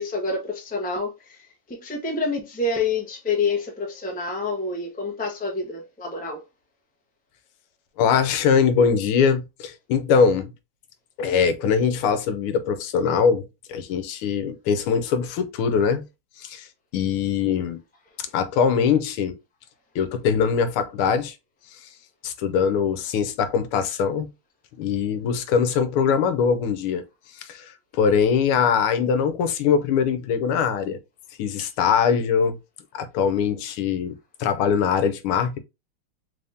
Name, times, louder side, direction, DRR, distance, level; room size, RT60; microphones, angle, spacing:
voice 1, 0.0-6.4, left 3 dB, 10° left, 0.4 m, -28 dB
voice 2, 8.0-10.5 11.2-16.0 16.4-16.7 16.9-17.8 18.3-19.4 19.9-21.3 21.7-21.9 22.2-24.3 24.8-27.0 27.3-31.0 31.4-32.6 32.9-35.6, left 6 dB, 85° left, 1.6 m, -22 dB
4.1 x 3.4 x 2.6 m
omnidirectional pair, 2.4 m